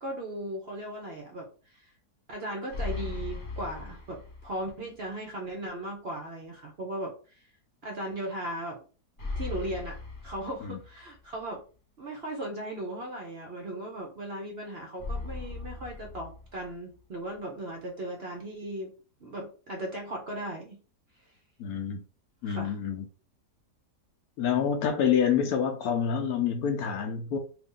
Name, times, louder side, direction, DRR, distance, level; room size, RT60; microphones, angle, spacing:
voice 1, 0.0-1.9 2.3-7.5 7.8-8.8 9.4-10.0 10.2-11.6 12.0-18.9 19.2-20.8 22.4-22.8, right 1 dB, 60° right, 0.6 m, -37 dB
sound 1, 2.7-4.7 5.1-5.2 9.2-11.2 15.0-17.0, left 3 dB, 40° left, 0.9 m, -38 dB
voice 2, 21.6-22.0 22.4-23.0 24.4-27.4, left 7 dB, 70° left, 1.0 m, -27 dB
2.8 x 2.6 x 3.7 m
omnidirectional pair, 1.8 m